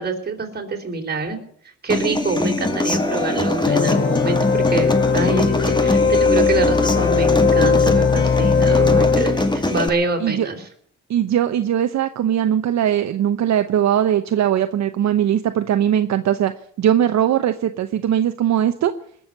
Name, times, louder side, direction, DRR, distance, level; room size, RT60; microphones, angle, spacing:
voice 1, 0.0-1.4 1.8-10.6, right 3 dB, 30° right, 2 dB, 4.1 m, -25 dB
Human voice / Acoustic guitar, 1.9-9.9, left 2 dB, 15° left, 2.0 m, -23 dB
sound 1, 3.6-9.8, left 5 dB, 35° left, 0.7 m, -18 dB
voice 2, 11.1-16.5 16.8-18.9, right 10 dB, 65° right, 8 dB, 0.9 m, -20 dB
20.5 x 7.2 x 9.3 m, 0.62 s
cardioid pair, 90°, 30 cm